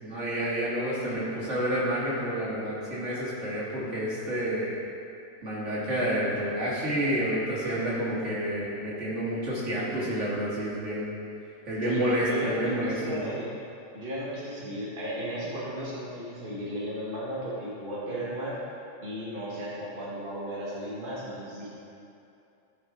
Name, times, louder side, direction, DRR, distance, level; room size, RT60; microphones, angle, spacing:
voice 1, 0.0-4.8 5.4-11.1 11.7-13.4, equal, 75° right, -8 dB, 2.8 m, -29 dB
voice 2, 11.8-13.6 13.9-18.6 19.0-21.7, equal, 45° right, -8 dB, 1.8 m, -35 dB
15.5 x 5.5 x 3.8 m, 2.6 s
omnidirectional pair, 1.3 m